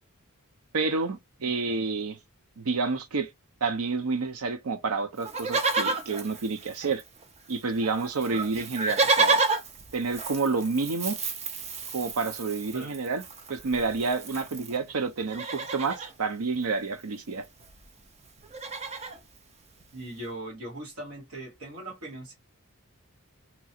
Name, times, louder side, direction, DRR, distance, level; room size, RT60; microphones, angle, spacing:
voice 1, 0.7-2.2 2.6-3.3 3.6-7.0 7.5-9.4 9.9-11.2 11.9-13.2 13.5-17.5, right 4 dB, 90° right, 0.6 m, -29 dB
Livestock farm animals working animals, 5.2-7.2 7.5-7.6 7.8-14.8 15.2-16.1 17.3-17.4 17.6-17.9 18.2-19.2 19.8-19.9, right 3 dB, 30° right, 0.5 m, -30 dB
voice 2, 19.9-22.3, right 1 dB, 70° right, 1.7 m, -40 dB
3.0 x 2.4 x 2.7 m
head